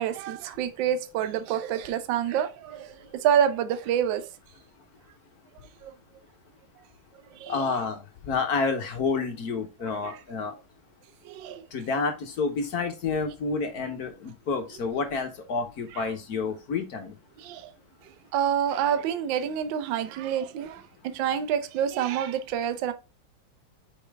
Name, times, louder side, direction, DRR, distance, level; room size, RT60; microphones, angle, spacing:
voice 1, 0.0-4.3 5.8-5.9 6.8-6.9 7.3-7.8 10.0-10.2 11.2-11.6 15.9-16.1 17.4-17.7 18.0-22.9, right 9 dB, 70° right, 1.4 m, -28 dB
voice 2, 7.5-10.5 11.7-17.1, left 4 dB, 55° left, 1.2 m, -29 dB
5.4 x 5.2 x 3.4 m
omnidirectional pair, 2.3 m